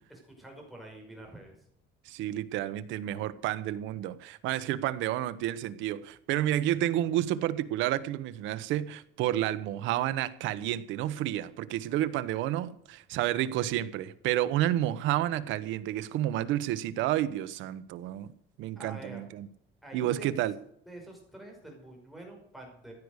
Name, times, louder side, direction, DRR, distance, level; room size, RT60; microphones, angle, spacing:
voice 1, 0.1-1.5 18.8-19.2 19.8-20.3 20.9-22.9, right 1 dB, ahead, 5.4 m, -47 dB
voice 2, 2.0-18.3 18.6-19.5 19.9-20.5, right 13 dB, 80° right, 1.1 m, -30 dB
15.5 x 9.8 x 6.5 m
cardioid pair, 165°, 19 cm